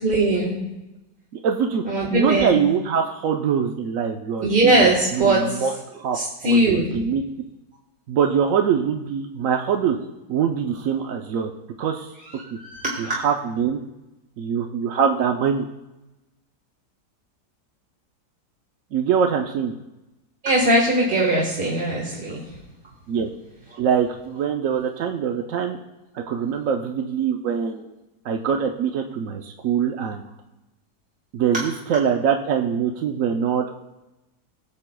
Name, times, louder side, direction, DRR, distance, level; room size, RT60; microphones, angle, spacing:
voice 1, 0.0-0.6 1.8-2.5 4.4-5.7 6.1-6.9 12.5-13.1 20.4-22.5, right 1 dB, 35° right, -3 dB, 1.6 m, -20 dB
voice 2, 1.4-1.8 2.1-4.9 5.1-6.2 6.4-7.2 8.1-10.0 10.3-11.5 11.8-12.1 12.5-12.6 13.0-13.8 14.4-15.6 18.9-19.7 23.1-23.3 23.8-25.8 26.1-27.9 28.2-30.2 31.3-33.7, right 7 dB, 65° right, 3 dB, 0.9 m, -23 dB
20.5 x 7.6 x 2.2 m, 0.99 s
omnidirectional pair, 1.7 m